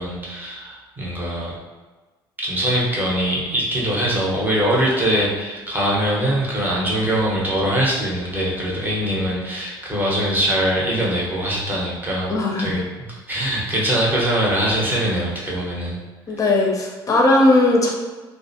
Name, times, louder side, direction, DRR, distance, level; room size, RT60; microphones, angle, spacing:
voice 1, 0.0-1.6 2.4-16.0, right 1 dB, 15° right, -5 dB, 0.9 m, -22 dB
voice 2, 12.3-12.7 16.3-17.9, left 2 dB, 25° left, 0 dB, 0.6 m, -17 dB
2.4 x 2.1 x 2.7 m, 1.2 s
hypercardioid pair, 60°, 13 cm